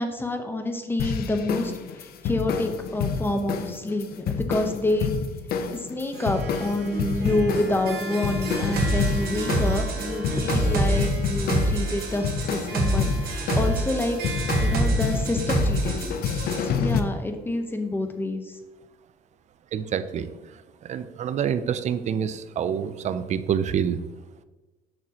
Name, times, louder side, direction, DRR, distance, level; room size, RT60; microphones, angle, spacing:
voice 1, 0.0-1.7 2.0-5.1 5.7-14.2 14.6-16.2 16.7-18.5, left 2 dB, 10° left, 6 dB, 0.8 m, -28 dB
sound 1, 1.0-17.0, left 6 dB, 65° left, 0.6 m, -29 dB
Harp, 6.1-17.4, right 2 dB, 80° right, 2.0 m, -37 dB
sound 2, 8.8-16.6, right 1 dB, 65° right, 1.3 m, -26 dB
voice 2, 19.7-24.0, right 8 dB, 45° right, 12 dB, 0.4 m, -27 dB
6.4 x 6.2 x 2.9 m, 1.2 s
cardioid pair, 110°, 17 cm